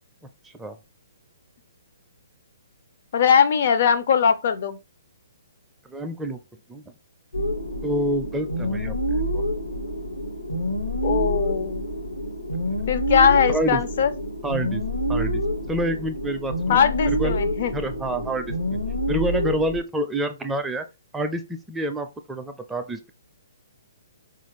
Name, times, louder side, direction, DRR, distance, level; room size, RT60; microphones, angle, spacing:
voice 1, 0.4-0.8 5.9-6.4 6.7-6.8 7.8-9.4 13.5-13.8 14.4-14.8 15.1-15.4 15.7-16.8 17.1-17.4 17.7-18.8 19.1-20.9 21.1-23.1, right 1 dB, 10° right, 0.4 m, -28 dB
voice 2, 3.1-4.8 11.0-11.9 12.9-14.1 16.7-17.7, left 7 dB, 50° left, 0.5 m, -20 dB
sound 1, 7.3-19.8, equal, 85° left, 1.0 m, -27 dB
4.1 x 2.4 x 2.9 m
figure-of-eight pair, 130°, 0 cm